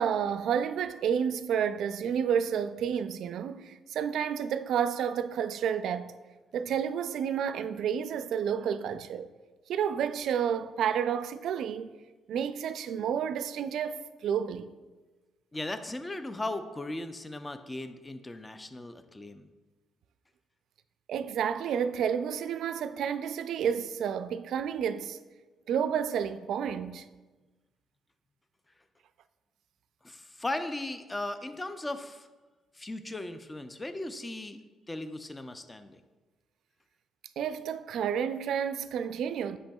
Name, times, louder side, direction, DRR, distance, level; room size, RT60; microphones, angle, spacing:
voice 1, 0.0-6.1 6.5-9.3 9.7-11.9 12.3-14.7 21.1-25.2 25.7-27.1 37.4-39.6, right 8 dB, 75° right, 0.3 m, -30 dB
voice 2, 15.5-19.5 30.0-32.3 32.7-34.6 34.9-36.0, left 2 dB, 20° left, 0.4 m, -37 dB
8.7 x 5.4 x 2.3 m
cardioid pair, 90°, 0 cm